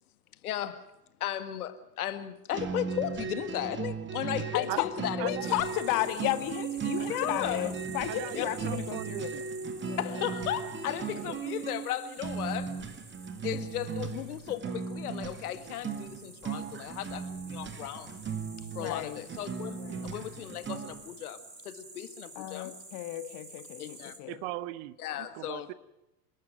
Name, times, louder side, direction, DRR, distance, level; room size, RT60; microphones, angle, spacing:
voice 1, 0.4-0.8 1.2-5.6 7.1-7.7 8.3-8.4 10.0-12.7 13.4-18.2 18.7-22.7 23.8-24.1 25.0-25.7, left 12 dB, 65° left, 1.8 m, -36 dB
sound 1, 2.5-21.1, right 6 dB, 25° right, 2.2 m, -37 dB
voice 2, 4.5-4.9 5.2-9.3 9.9-10.2 18.8-19.2 19.8-20.1 22.4-24.4, left 15 dB, 40° left, 2.0 m, -33 dB
voice 3, 5.2-5.5 7.0-7.2 8.1-9.4 11.2-11.4 19.9-20.0 24.3-25.7, right 17 dB, 45° right, 1.1 m, -39 dB
sound 2, 5.4-24.2, right 2 dB, 90° right, 3.0 m, -51 dB
29.0 x 12.0 x 9.1 m
figure-of-eight pair, 80°, 48 cm